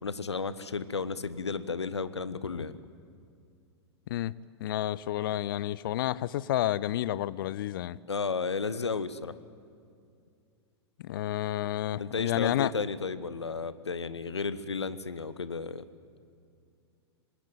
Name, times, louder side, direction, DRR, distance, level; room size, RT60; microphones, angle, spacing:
voice 1, 0.0-2.8 8.1-9.3 12.0-15.8, left 4 dB, 75° left, 15 dB, 1.1 m, -33 dB
voice 2, 4.6-8.0 11.0-12.7, left 13 dB, 50° left, 21 dB, 0.6 m, -30 dB
25.5 x 20.0 x 9.1 m, 2.3 s
figure-of-eight pair, 95°, 14 cm